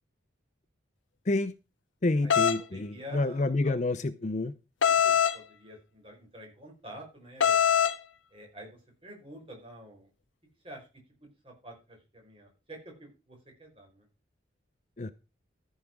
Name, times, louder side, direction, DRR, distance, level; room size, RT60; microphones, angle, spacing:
voice 1, 2.0-4.5 15.0-15.1, left 2 dB, 40° left, 0.5 m, -28 dB
sound 1, 2.3-2.6 4.8-5.4 7.4-8.0, left 8 dB, 80° left, 0.8 m, -22 dB
voice 2, 2.6-3.8 4.9-7.6 8.3-10.1 10.6-10.9 11.2-14.0, equal, 30° right, 4.9 m, -48 dB
13.5 x 5.6 x 6.0 m
head